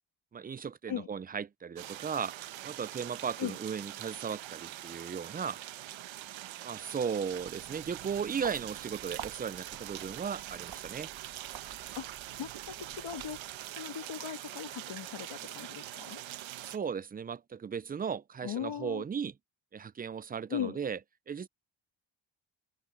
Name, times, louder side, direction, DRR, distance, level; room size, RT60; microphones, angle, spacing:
voice 1, 0.3-2.3 2.6-5.6 6.6-11.1 16.6-19.3 19.7-21.0 21.3-21.5, right 6 dB, 20° right, 0.3 m, -36 dB
sound 1, 1.8-16.8, right 14 dB, 85° right, 1.0 m, -44 dB
Walk footsteps, 7.2-13.7, right 9 dB, 60° right, 1.6 m, -50 dB
voice 2, 12.4-13.4 13.7-16.2 18.4-19.0 20.5-20.8, left 10 dB, 75° left, 2.2 m, -38 dB
open air
cardioid pair, 85°, 45 cm